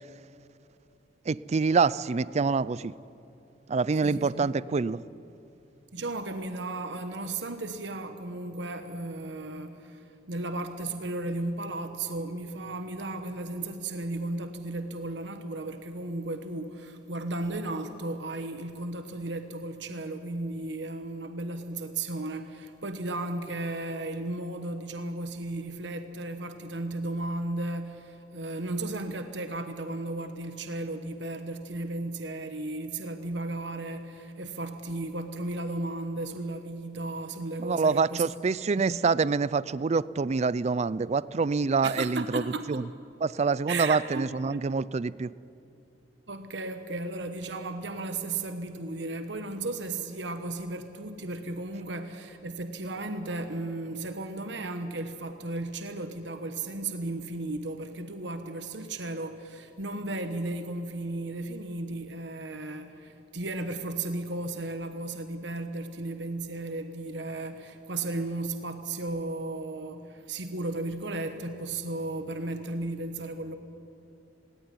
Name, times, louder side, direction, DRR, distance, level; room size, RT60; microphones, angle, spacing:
voice 1, 1.3-2.9 3.7-5.0 37.6-42.4 42.7-42.8 43.2-45.3, right 4 dB, 35° right, 19 dB, 0.4 m, -26 dB
voice 2, 4.0-4.6 5.9-39.1 41.8-42.8 43.7-44.6 46.3-73.5, right 2 dB, 70° right, 8 dB, 1.2 m, -35 dB
18.0 x 18.0 x 9.8 m, 2.6 s
head